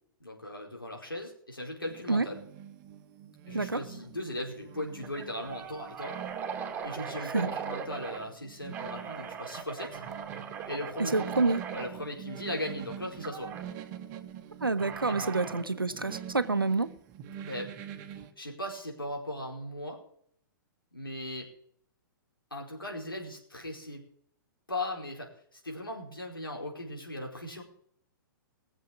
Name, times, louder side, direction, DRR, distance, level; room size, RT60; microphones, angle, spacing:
voice 1, 0.2-2.4 3.5-6.2 6.8-10.0 10.7-11.4 11.7-13.5 15.1-15.4 17.4-17.7 18.2-20.0 20.9-21.5 22.5-24.0 24.7-27.6, left 1 dB, 85° left, 4.7 m, -38 dB
sound 1, 1.8-18.3, right 9 dB, 35° right, 1.5 m, -45 dB
sound 2, 3.8-4.0 4.3-4.4 5.0-8.3 8.7-11.9 13.2-13.6 14.8-15.7, right 6 dB, 20° right, 2.5 m, -39 dB
voice 2, 11.0-11.6 14.6-16.9, right 3 dB, 85° right, 1.0 m, -28 dB
20.5 x 7.5 x 6.0 m
figure-of-eight pair, 110°, 11 cm